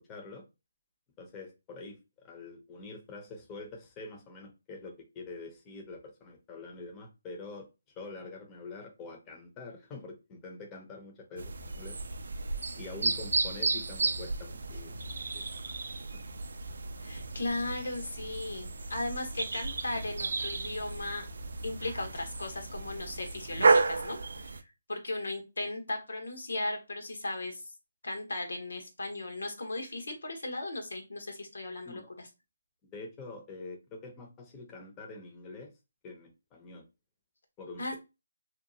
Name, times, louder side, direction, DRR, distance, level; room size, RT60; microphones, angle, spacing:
voice 1, 0.1-0.4 1.2-7.7 8.0-12.0 12.8-15.4 15.7-15.8 31.9-32.1 32.9-35.7 36.0-36.9 37.6-37.9, left 3 dB, 20° left, 1 dB, 0.6 m, -45 dB
sound 1, 11.4-24.6, right 3 dB, 70° right, 0.3 m, -32 dB
voice 2, 17.0-21.3 21.6-27.6 28.0-32.3 37.8-38.0, left 2 dB, 90° left, 3 dB, 1.0 m, -37 dB
2.7 x 2.2 x 2.7 m, 0.26 s
hypercardioid pair, 160°, 0 cm